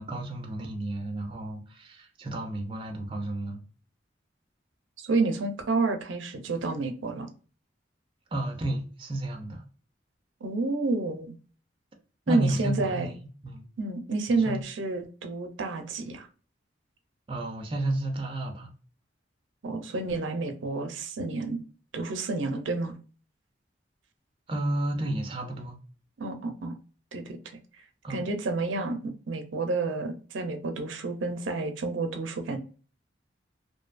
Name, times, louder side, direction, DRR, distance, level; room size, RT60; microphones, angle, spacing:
voice 1, 0.0-3.6 8.3-9.6 12.3-13.7 14.3-14.6 17.3-18.7 24.5-25.8 28.0-28.2, right 1 dB, 25° right, 0.4 m, -32 dB
voice 2, 5.0-7.3 10.4-11.3 12.3-13.1 13.8-16.3 19.6-21.6 21.9-22.9 26.2-26.8 27.1-27.4 28.1-32.6, right 3 dB, 80° right, 0.5 m, -30 dB
2.6 x 2.2 x 2.4 m
head